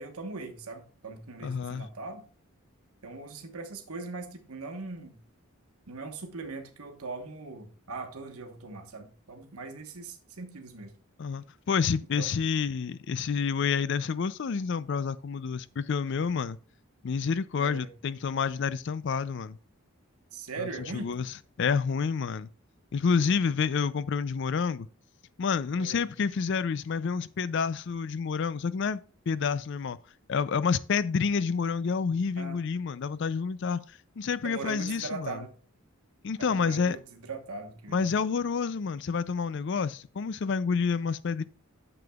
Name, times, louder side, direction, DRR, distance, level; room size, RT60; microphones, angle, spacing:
voice 1, 0.0-2.2 3.0-5.2 5.9-10.9 12.2-12.3 17.6-17.9 20.3-21.1 25.8-26.0 32.4-32.6 34.4-35.5 36.4-38.0, right 3 dB, 85° right, 1.3 m, -40 dB
voice 2, 1.4-1.9 11.2-16.6 17.0-19.6 20.6-22.5 22.9-24.9 25.4-29.0 29.3-30.0 30.3-33.8 34.2-35.4 36.2-37.0 37.9-41.4, left 5 dB, 55° left, 0.4 m, -29 dB
9.8 x 6.8 x 2.3 m
head